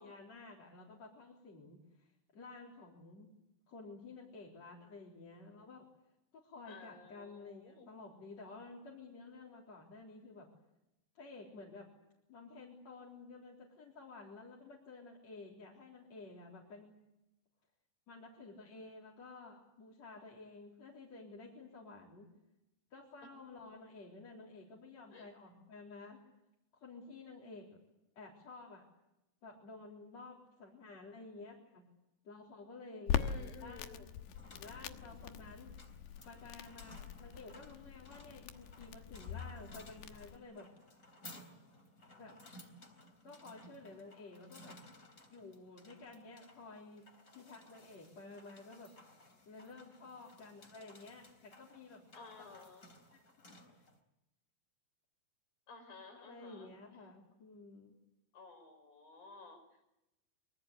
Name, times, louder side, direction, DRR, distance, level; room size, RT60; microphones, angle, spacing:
voice 1, 0.0-3.3 3.7-5.8 6.3-10.5 11.1-11.9 12.3-17.0 18.1-22.3 22.9-26.2 26.8-27.7 28.2-28.8 29.4-31.8 32.2-34.0 34.5-35.7 36.2-40.7 42.2-42.4 43.2-44.8 45.3-47.1 47.3-48.9 49.5-52.0 52.4-52.5 53.4-53.9 56.2-57.9, left 3 dB, 40° left, -3 dB, 4.8 m, -52 dB
voice 2, 6.7-7.9 25.1-25.3 33.1-34.0 52.1-52.9 55.7-56.7 58.3-59.9, left 4 dB, 60° left, 8 dB, 6.8 m, -54 dB
Crackle, 33.1-40.4, left 9 dB, 85° left, 3.3 m, -42 dB
sound 1, 34.1-54.0, left 1 dB, 20° left, 3.5 m, -59 dB
25.5 x 24.0 x 8.2 m, 0.90 s
omnidirectional pair, 4.8 m